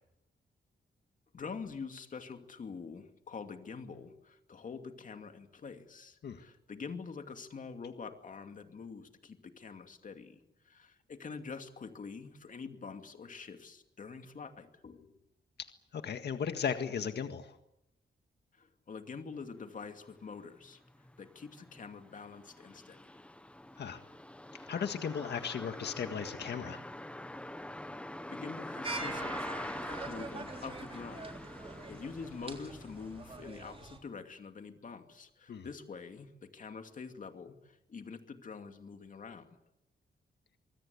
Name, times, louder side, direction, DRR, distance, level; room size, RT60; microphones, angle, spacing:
voice 1, 1.3-15.2 18.5-20.8 21.2-23.1 28.2-39.6, left 5 dB, 45° left, 6 dB, 2.5 m, -46 dB
voice 2, 15.6-17.6 23.8-24.0 24.5-26.8 35.5-35.7, left 7 dB, 65° left, 7 dB, 1.8 m, -36 dB
sound 1, 20.1-20.2 20.6-33.5, left 1 dB, 5° left, 1.0 m, -45 dB
sound 2, 28.8-34.0, right 3 dB, 30° right, 3.7 m, -44 dB
25.5 x 23.0 x 8.5 m, 0.86 s
wide cardioid pair, 180°, 19 cm